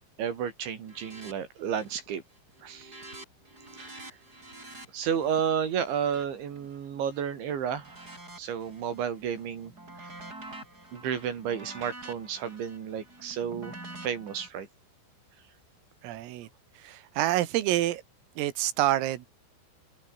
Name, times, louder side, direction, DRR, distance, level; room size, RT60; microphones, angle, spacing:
voice 1, 0.2-2.2 2.6-3.0 3.8-4.2 4.9-9.7 10.0-10.1 10.9-13.8 14.0-14.7, right 8 dB, 65° right, 5.4 m, -32 dB
sound 1, 0.9-1.3 1.6-2.1 2.4-7.2 7.7-9.0 9.4-14.5, right 2 dB, 15° right, 7.6 m, -47 dB
voice 2, 16.0-16.5 16.8-18.0 18.4-19.3, right 14 dB, 80° right, 4.2 m, -27 dB
omnidirectional pair, 6.0 m